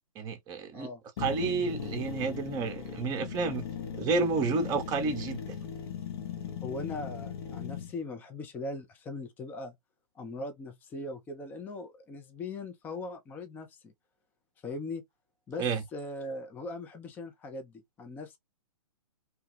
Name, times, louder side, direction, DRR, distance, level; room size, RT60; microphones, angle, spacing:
voice 1, 0.2-0.9 1.2-3.6 3.9-5.6 15.6-15.8, right 4 dB, 20° right, 0.8 m, -30 dB
sound 1, 1.2-7.9, left 7 dB, 40° left, 0.8 m, -38 dB
voice 2, 6.6-9.8 10.2-13.9 14.6-15.0 15.5-15.7 15.9-18.4, left 2 dB, 10° left, 0.5 m, -40 dB
2.9 x 2.2 x 3.1 m
figure-of-eight pair, 125°, 19 cm